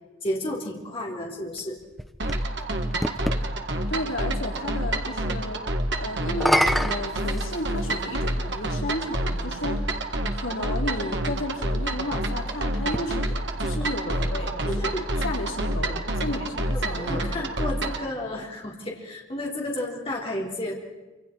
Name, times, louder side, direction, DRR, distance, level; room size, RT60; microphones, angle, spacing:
voice 1, 0.2-1.8 14.1-14.2 14.6-15.2 16.3-16.4 16.7-20.7, left 1 dB, 30° left, -2 dB, 3.5 m, -32 dB
sound 1, 1.6-3.4 6.2-8.0 9.0-9.1 12.8-14.3, equal, ahead, 0.7 m, -28 dB
sound 2, 2.2-18.1, right 1 dB, 60° right, 1.8 m, -28 dB
voice 2, 3.9-5.6 6.0-14.9 15.2-17.3, left 1 dB, 80° left, 0 dB, 3.8 m, -33 dB
27.0 x 26.5 x 4.6 m, 1.2 s
head